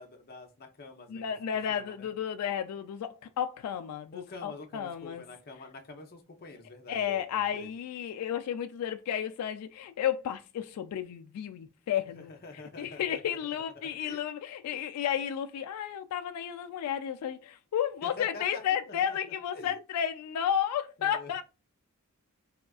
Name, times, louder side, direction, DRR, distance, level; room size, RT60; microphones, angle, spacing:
voice 1, 0.0-1.2 1.7-2.1 4.1-7.7 12.0-14.2 18.0-18.6 18.9-19.2 19.5-19.8 21.0-21.4, left 3 dB, 45° left, 0.6 m, -46 dB
voice 2, 1.1-5.2 6.9-12.3 12.8-21.4, left 9 dB, 90° left, 0.3 m, -32 dB
3.5 x 2.3 x 2.3 m
head